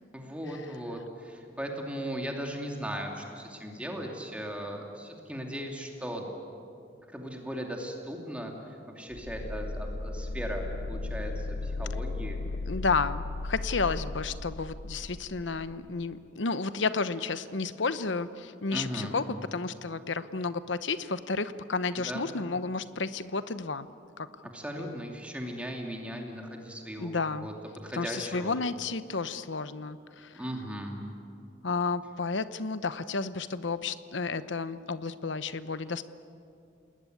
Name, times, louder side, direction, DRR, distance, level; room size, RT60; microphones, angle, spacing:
voice 1, 0.1-6.2 7.1-8.5 8.9-12.4 18.7-19.1 22.0-22.3 24.5-27.1 27.4-27.5 27.8-28.5 30.3-31.0, equal, 5° right, 1 dB, 2.7 m, -37 dB
sound 1, 9.1-15.8, left 2 dB, 50° left, 0.7 m, -36 dB
voice 2, 12.7-23.9 24.2-24.3 24.8-25.0 27.0-27.5 27.9-30.4 31.6-36.0, left 4 dB, 75° left, 13 dB, 0.9 m, -32 dB
28.5 x 20.5 x 9.5 m, 2.5 s
head